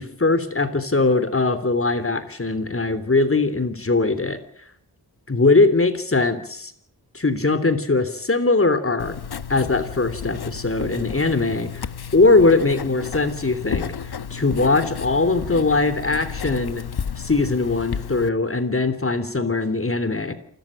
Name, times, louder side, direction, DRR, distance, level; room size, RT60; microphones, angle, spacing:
voice 1, 0.0-4.4 5.3-6.7 7.1-9.1 9.5-11.9 12.1-13.9 14.3-16.8 17.2-20.3, left 3 dB, 35° left, 11 dB, 3.3 m, -20 dB
Writing, 9.0-18.3, left 7 dB, 70° left, 1.2 m, -32 dB
28.0 x 14.0 x 9.0 m, 0.63 s
wide cardioid pair, 80°, 40 cm